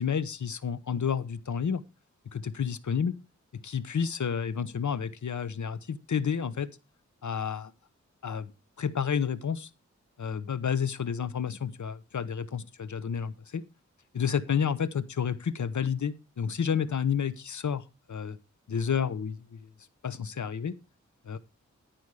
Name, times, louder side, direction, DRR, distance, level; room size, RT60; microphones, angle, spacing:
voice 1, 0.0-1.8 2.3-3.1 3.5-6.7 7.2-7.7 8.2-8.5 8.8-9.7 10.2-13.6 14.1-18.4 18.7-19.6 20.0-20.7 21.2-21.4, left 7 dB, 75° left, 15 dB, 1.0 m, -30 dB
13.5 x 6.1 x 5.0 m, 0.27 s
wide cardioid pair, 75°, 30 cm